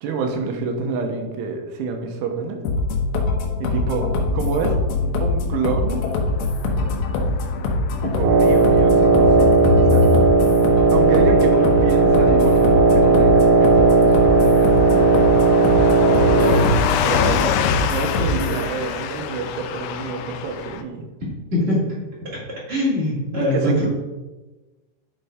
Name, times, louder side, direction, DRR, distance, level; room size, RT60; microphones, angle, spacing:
voice 1, 0.0-2.6 3.6-4.8 5.2-6.0 8.0-10.1 10.9-15.2 17.0-21.1 23.4-23.9, right 4 dB, 90° right, 4 dB, 3.5 m, -28 dB
sound 1, 2.7-18.6, left 3 dB, 75° left, 3.2 m, -22 dB
Car passing by / Truck, 6.5-20.8, left 8 dB, 90° left, 2.3 m, -28 dB
Wind instrument woodwind instrument, 8.2-16.8, right 3 dB, 70° right, 2.7 m, -16 dB
voice 2, 16.3-16.7 21.5-21.8 22.7-23.9, left 1 dB, 40° right, -7 dB, 0.8 m, -21 dB
11.0 x 4.6 x 5.1 m, 1.2 s
omnidirectional pair, 5.5 m